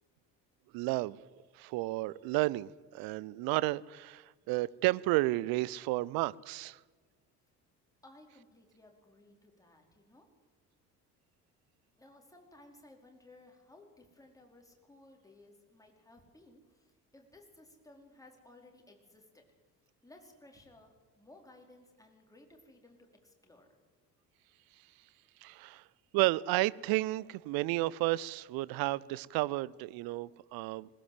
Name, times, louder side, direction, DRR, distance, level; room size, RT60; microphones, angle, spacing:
voice 1, 0.7-1.2 1.5-6.8 25.4-25.8 26.1-30.9, right 19 dB, 50° right, 21 dB, 0.7 m, -32 dB
voice 2, 8.0-10.3 12.0-19.4 20.0-23.7, left 2 dB, 5° left, 1 dB, 4.7 m, -58 dB
21.0 x 18.0 x 7.8 m, 1.4 s
figure-of-eight pair, 55°, 47 cm